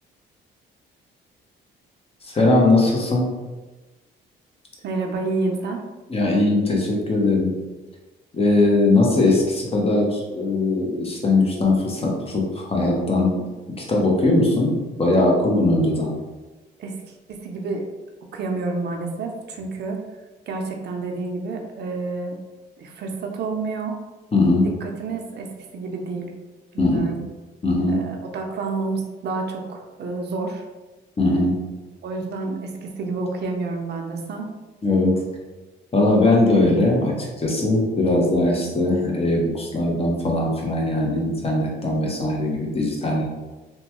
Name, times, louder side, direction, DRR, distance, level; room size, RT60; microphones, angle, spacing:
voice 1, 2.2-3.3 6.1-7.5 8.3-13.5 13.8-14.7 15.0-16.1 24.3-24.7 26.8-27.1 27.6-28.0 31.2-31.6 34.8-35.2 35.9-43.3, left 2 dB, 30° left, -1 dB, 0.8 m, -20 dB
voice 2, 4.8-5.8 16.8-17.9 18.3-20.0 20.5-22.4 22.8-24.0 24.8-26.3 26.7-27.2 27.9-30.6 32.0-34.5, right 3 dB, 60° right, 2 dB, 0.5 m, -29 dB
3.0 x 2.2 x 2.9 m, 1.2 s
cardioid pair, 90°, 20 cm